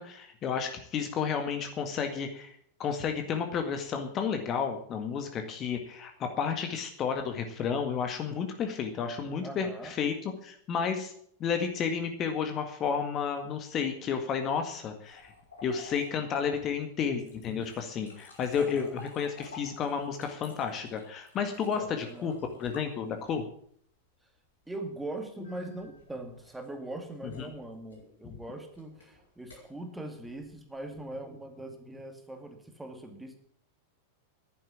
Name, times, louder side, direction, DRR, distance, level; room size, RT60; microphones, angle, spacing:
voice 1, 0.0-11.1 11.4-15.3 15.6-22.3 22.6-23.4 27.2-27.5, left 6 dB, 30° left, 6 dB, 1.8 m, -32 dB
voice 2, 9.4-9.9 18.6-19.0 21.7-22.3 24.7-33.4, right 1 dB, 5° right, 5 dB, 2.3 m, -41 dB
sound 1, 15.0-23.7 25.4-31.2, left 3 dB, 70° left, 5.2 m, -53 dB
11.5 x 9.7 x 8.5 m, 0.62 s
figure-of-eight pair, 90°, 0 cm